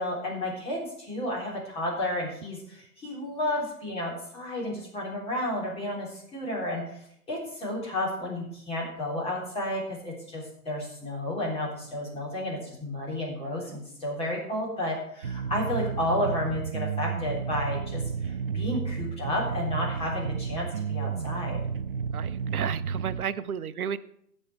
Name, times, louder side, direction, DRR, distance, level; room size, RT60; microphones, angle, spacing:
voice 1, 0.0-7.0 7.3-18.0 18.5-21.6, left 1 dB, 10° left, -3 dB, 3.7 m, -32 dB
sound 1, 15.2-23.2, right 6 dB, 40° right, 0.4 m, -32 dB
voice 2, 22.1-24.0, right 8 dB, 65° right, 13 dB, 0.9 m, -32 dB
16.5 x 6.4 x 4.6 m, 0.68 s
figure-of-eight pair, 130°, 47 cm